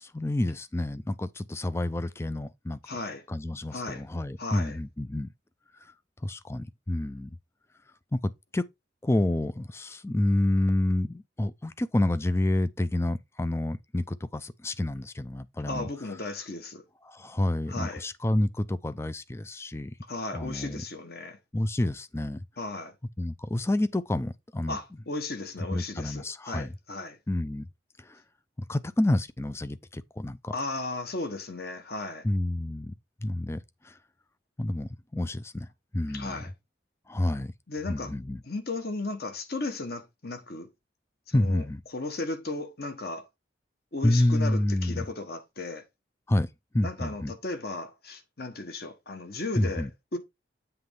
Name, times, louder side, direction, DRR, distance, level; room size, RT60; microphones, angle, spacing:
voice 1, 0.0-2.8 3.3-5.3 6.2-7.3 8.1-8.2 8.5-8.7 9.0-15.9 17.0-19.9 20.3-20.8 21.5-22.4 23.2-24.8 25.7-26.7 27.3-27.7 28.0-28.2 28.7-30.5 32.2-32.9 33.2-33.9 34.6-35.7 35.9-36.4 37.1-37.5 37.9-38.4 41.3-41.8 44.0-45.0 46.3-46.5 46.7-47.3 49.6-49.9, left 1 dB, 15° left, 0.4 m, -28 dB
voice 2, 2.8-3.2 3.7-4.0 4.4-4.8 15.7-16.8 17.7-18.0 20.1-21.4 22.6-22.9 24.7-27.2 30.5-32.3 36.1-36.5 37.7-38.1 38.4-40.7 41.3-41.6 41.9-43.3 43.9-45.8 46.8-50.2, left 2 dB, 55° left, 1.3 m, -35 dB
7.9 x 3.1 x 5.3 m
head